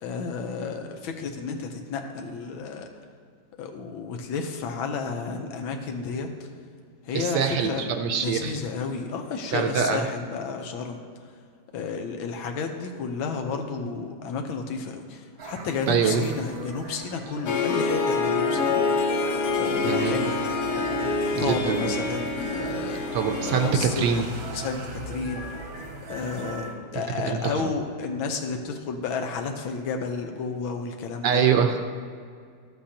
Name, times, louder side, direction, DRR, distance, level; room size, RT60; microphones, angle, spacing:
voice 1, 0.0-2.9 3.6-6.5 7.0-7.9 8.1-11.0 11.7-18.8 19.5-20.4 21.4-23.0 23.4-25.5 26.1-31.5, left 5 dB, 85° left, 4 dB, 1.6 m, -32 dB
voice 2, 7.1-8.5 9.5-10.0 15.9-16.3 19.8-20.1 21.3-21.8 23.1-24.3 27.3-27.6 31.2-31.8, right 6 dB, 70° right, 5 dB, 1.2 m, -24 dB
sound 1, 15.4-26.7, right 3 dB, 90° right, 2.0 m, -39 dB
Harp, 17.5-23.7, left 3 dB, 65° left, 1.2 m, -26 dB
13.0 x 7.7 x 2.9 m, 2.2 s
omnidirectional pair, 2.1 m